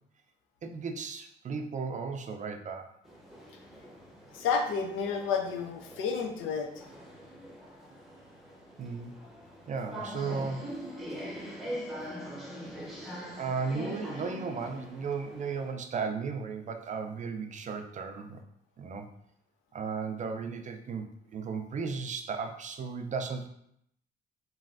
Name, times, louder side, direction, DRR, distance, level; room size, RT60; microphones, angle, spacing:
voice 1, 0.6-2.9 8.8-9.1 9.7-10.7 13.4-18.4 18.8-19.1 19.7-23.5, right 5 dB, 40° right, 6 dB, 0.4 m, -35 dB
sound 1, 3.0-15.7, equal, ahead, 0.7 m, -43 dB
voice 2, 4.3-6.8, left 5 dB, 85° left, 4 dB, 0.5 m, -31 dB
3.1 x 2.4 x 2.5 m, 0.73 s
cardioid pair, 90°, 20 cm